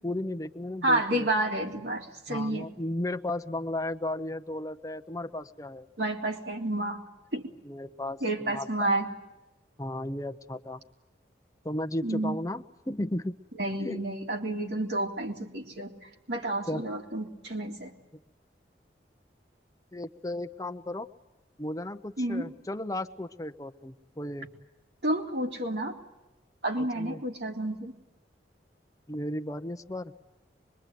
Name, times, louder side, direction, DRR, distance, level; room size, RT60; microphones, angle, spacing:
voice 1, 0.0-1.3 2.3-5.9 7.6-8.9 9.8-10.8 11.6-13.4 13.8-14.0 16.7-16.8 19.9-21.1 21.6-24.5 26.8-27.2 29.1-30.1, left 1 dB, 20° left, 8 dB, 0.8 m, -35 dB
voice 2, 0.8-2.7 6.0-7.0 7.3-7.5 8.2-9.1 12.0-12.4 13.6-15.9 16.3-17.9 22.2-22.5 25.0-25.9 26.6-27.9, right 1 dB, 75° right, 1 dB, 3.5 m, -30 dB
24.5 x 23.0 x 9.3 m, 1.0 s
head